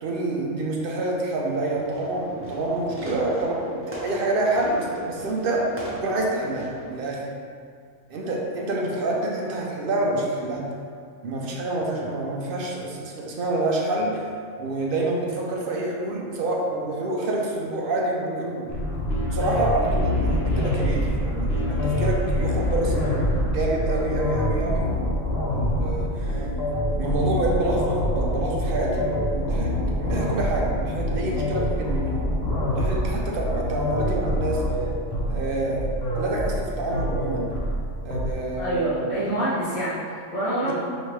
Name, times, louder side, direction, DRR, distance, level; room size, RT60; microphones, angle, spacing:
voice 1, 0.0-7.3 8.1-10.7 11.2-14.3 14.6-18.7 19.3-23.2 23.5-25.1 25.5-26.5 27.0-32.2 32.7-34.6 35.3-35.9 36.1-37.5 38.0-39.1 40.6-40.7, right 2 dB, 55° right, -1 dB, 0.6 m, -27 dB
Fireworks, 1.8-6.9, equal, 10° right, 0.9 m, -39 dB
sound 1, 18.7-38.3, equal, 55° left, 0.9 m, -25 dB
voice 2, 38.6-40.7, right 1 dB, 85° left, -12 dB, 1.5 m, -26 dB
4.9 x 3.2 x 3.1 m, 2.2 s
omnidirectional pair, 1.3 m